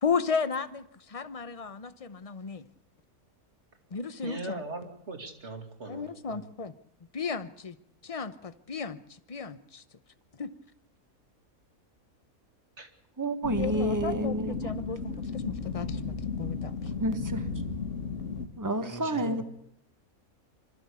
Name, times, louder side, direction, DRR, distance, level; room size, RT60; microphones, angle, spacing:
voice 1, 0.0-2.6 3.9-4.6 5.9-6.7 7.1-7.8 8.0-9.0 9.3-9.8 10.4-10.5 13.6-16.7, left 5 dB, 30° left, 12 dB, 0.8 m, -34 dB
voice 2, 4.2-6.4 12.8-12.9 18.8-19.4, right 2 dB, 50° right, 4 dB, 2.7 m, -40 dB
voice 3, 13.2-14.6 17.0-17.4 18.6-19.4, right 1 dB, 15° right, 8 dB, 1.3 m, -29 dB
sound 1, 13.4-18.5, left 4 dB, 55° left, 1.9 m, -34 dB
25.0 x 14.0 x 8.3 m, 0.74 s
omnidirectional pair, 1.5 m